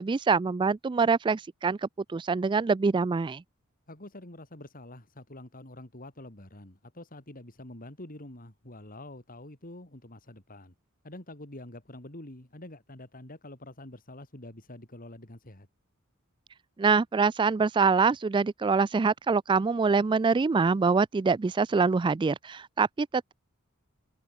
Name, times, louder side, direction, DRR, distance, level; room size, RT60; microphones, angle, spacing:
voice 1, 0.0-3.4 16.8-23.3, right 4 dB, 20° right, 0.3 m, -25 dB
voice 2, 3.9-10.7 11.0-15.7, left 1 dB, 40° left, 4.0 m, -46 dB
head